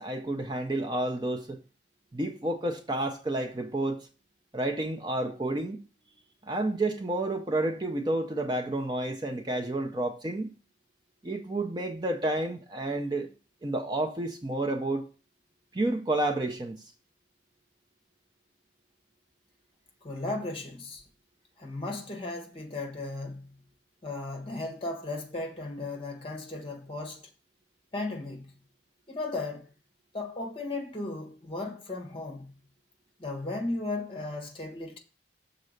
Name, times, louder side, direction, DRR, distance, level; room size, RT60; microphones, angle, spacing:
voice 1, 0.0-1.6 2.1-4.1 4.5-5.8 6.4-10.5 11.2-13.3 13.6-15.0 15.7-16.8, right 2 dB, 25° right, 0.6 m, -30 dB
voice 2, 20.0-21.0 21.6-23.6 24.0-27.3 27.9-28.5 29.1-29.7 30.1-32.5 33.2-35.0, left 2 dB, 30° left, 1.3 m, -36 dB
6.6 x 4.0 x 6.4 m
head